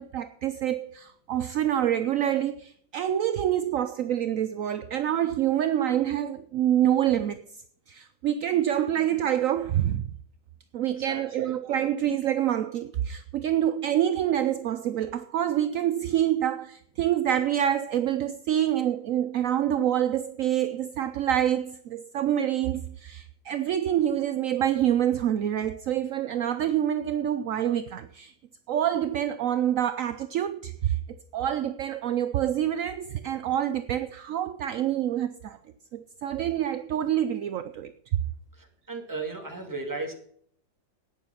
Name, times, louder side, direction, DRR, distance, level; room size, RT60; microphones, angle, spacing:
voice 1, 0.0-7.4 7.9-10.0 10.7-28.3 28.7-35.6 35.9-37.9, right 11 dB, 65° right, 0.8 m, -26 dB
voice 2, 11.0-11.6 38.5-40.1, right 3 dB, 10° right, 2.4 m, -36 dB
11.5 x 9.5 x 5.8 m
omnidirectional pair, 2.0 m